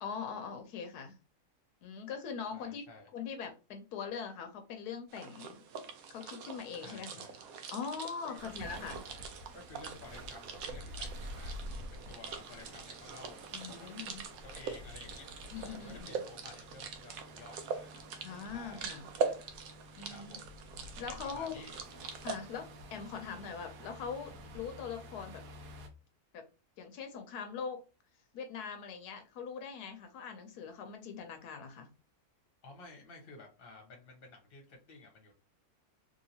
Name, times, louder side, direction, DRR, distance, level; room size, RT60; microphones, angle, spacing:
voice 1, 0.0-1.1 1.8-2.9 3.1-5.6 6.1-7.2 7.7-9.0 13.5-14.2 15.5-16.2 18.2-19.1 20.0-20.3 21.0-21.6 22.2-25.4 26.3-26.4 26.8-27.8 28.3-31.9, left 6 dB, 85° left, 6 dB, 1.2 m, -42 dB
voice 2, 2.5-3.1 6.8-7.4 8.2-8.5 9.5-13.9 14.2-15.3 15.7-18.0 18.5-18.9 20.1-20.5 21.1-21.8 32.6-35.3, left 3 dB, 40° left, 1 dB, 1.1 m, -53 dB
sound 1, 5.1-22.4, right 6 dB, 70° right, 1.0 m, -43 dB
sound 2, 8.4-25.9, equal, 85° right, 1.2 m, -49 dB
3.2 x 2.8 x 2.8 m, 0.32 s
omnidirectional pair, 1.6 m